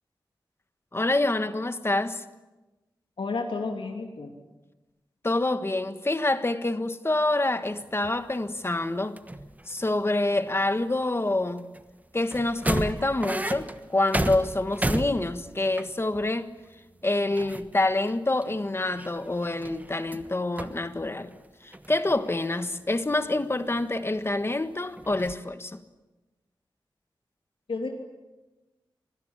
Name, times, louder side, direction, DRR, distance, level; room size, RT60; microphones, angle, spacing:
voice 1, 0.9-2.2 5.2-9.2 9.7-11.7 12.1-16.5 17.0-21.3 21.6-25.8, left 2 dB, 30° left, 1.5 m, -27 dB
voice 2, 3.2-4.4 27.7-27.9, left 3 dB, 80° left, 2.9 m, -31 dB
sound 1, 7.7-8.6 9.0-10.1 10.4-11.8 12.3-16.3 16.7-16.8 17.0-18.2 18.4-20.3 20.6-21.4 21.7-22.6 23.1-24.5 25.0-25.3, right 1 dB, 20° right, 1.3 m, -33 dB
26.0 x 19.5 x 8.9 m
wide cardioid pair, 100°, 9 cm